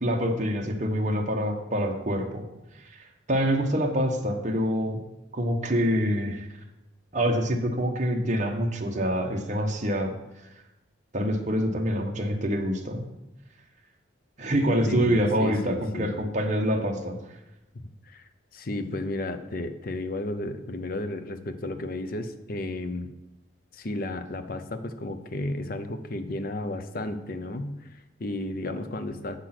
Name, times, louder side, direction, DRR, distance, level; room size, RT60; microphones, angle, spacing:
voice 1, 0.0-2.4 2.7-5.0 5.3-6.5 7.1-10.1 11.1-13.1 14.4-17.4, equal, 40° right, 3 dB, 1.1 m, -26 dB
voice 2, 14.9-16.1 17.7-23.1 23.7-29.4, left 2 dB, 50° left, 9 dB, 0.7 m, -33 dB
7.6 x 6.5 x 5.9 m, 0.93 s
head